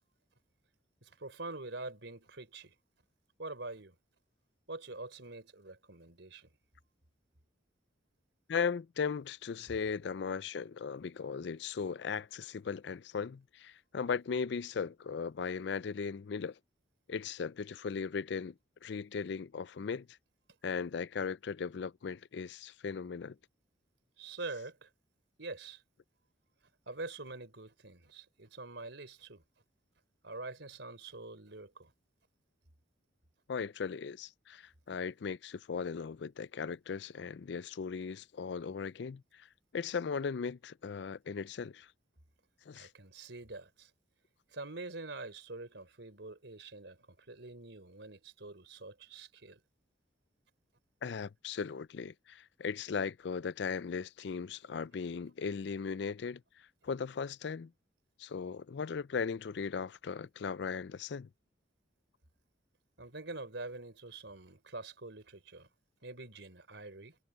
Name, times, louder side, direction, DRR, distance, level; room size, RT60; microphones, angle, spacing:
voice 1, 1.0-2.7 3.4-4.0 4.7-6.5 24.2-24.9 25.4-25.8 26.9-29.4 30.2-31.9 42.8-43.9 44.5-49.6 63.0-65.7 66.0-67.2, right 2 dB, 70° right, 4.0 m, -45 dB
voice 2, 8.5-16.6 17.1-18.5 18.8-20.1 20.6-23.4 33.5-39.5 39.7-41.9 42.7-42.9 51.0-57.7 58.2-61.3, left 5 dB, 60° left, 0.4 m, -37 dB
head